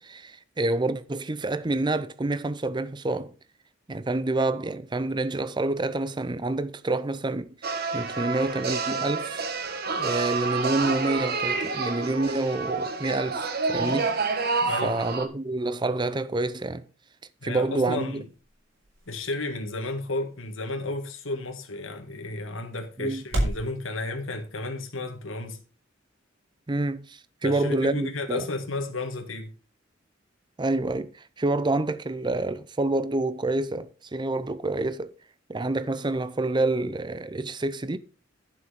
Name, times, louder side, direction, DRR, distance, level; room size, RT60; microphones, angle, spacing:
voice 1, 0.0-3.3 3.9-7.5 7.9-9.5 10.0-14.1 14.8-16.8 17.4-18.2 23.0-23.2 26.7-28.5 30.6-35.1 35.5-38.0, right 2 dB, 25° right, 0.5 m, -28 dB
sound 1, 7.6-15.3, right 4 dB, 50° right, 1.3 m, -28 dB
voice 2, 14.6-15.0 17.4-18.3 19.1-25.6 27.4-29.5, left 2 dB, 80° left, 1.7 m, -33 dB
sound 2, 17.4-23.7, right 1 dB, 85° right, 5.0 m, -37 dB
11.0 x 6.1 x 4.8 m
head